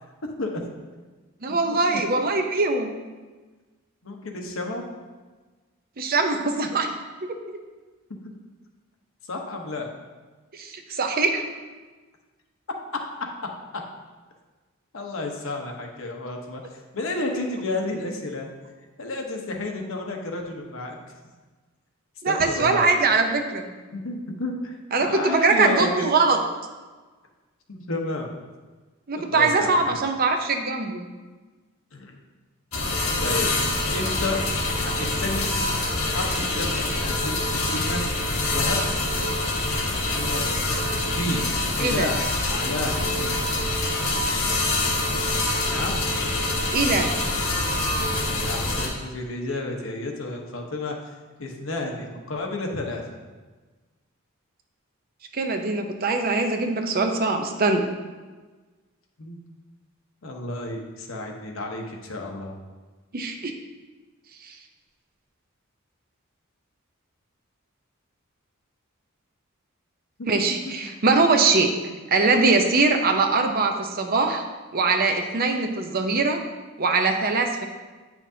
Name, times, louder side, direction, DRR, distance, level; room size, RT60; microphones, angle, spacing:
voice 1, 0.2-0.6 1.5-1.6 1.9-2.0 4.0-4.8 9.3-9.9 14.9-16.6 16.9-18.5 19.0-21.0 22.2-22.8 23.9-26.2 27.7-28.3 29.3-29.9 31.9-32.1 33.2-33.5 33.9-35.5 36.0-38.0 38.4-38.8 40.1-40.8 41.2-41.4 41.8-43.4 45.7-46.0 48.4-50.9 51.4-53.0 59.2-59.4 60.2-62.5 70.2-70.3, left 2 dB, 70° left, 2 dB, 1.0 m, -31 dB
voice 2, 1.4-2.9 6.0-6.9 10.5-11.4 22.2-23.7 24.9-26.4 29.1-31.0 41.8-42.1 46.7-47.1 55.3-57.9 63.1-63.5 64.4-64.5 70.3-71.7 72.1-74.5 74.7-76.4 76.8-77.7, right 3 dB, 45° right, 5 dB, 0.6 m, -22 dB
sound 1, 32.7-48.9, left 2 dB, 90° left, 1.6 m, -25 dB
8.7 x 5.8 x 2.7 m, 1.3 s
head